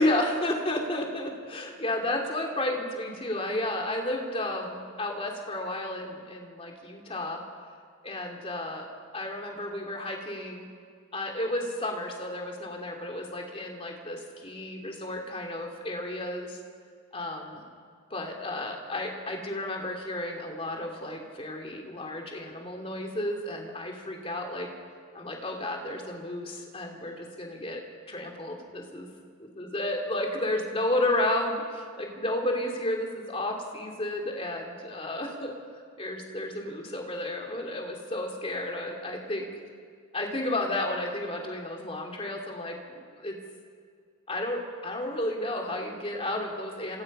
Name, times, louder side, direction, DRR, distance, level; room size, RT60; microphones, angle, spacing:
voice 1, 0.0-7.4 8.0-8.9 9.1-10.7 11.1-16.6 17.1-17.6 18.1-24.7 25.1-27.8 28.1-29.1 29.4-35.5 36.0-39.5 40.1-43.3 44.3-47.0, left 1 dB, 25° left, 1 dB, 3.1 m, -32 dB
28.5 x 26.5 x 5.6 m, 2.1 s
head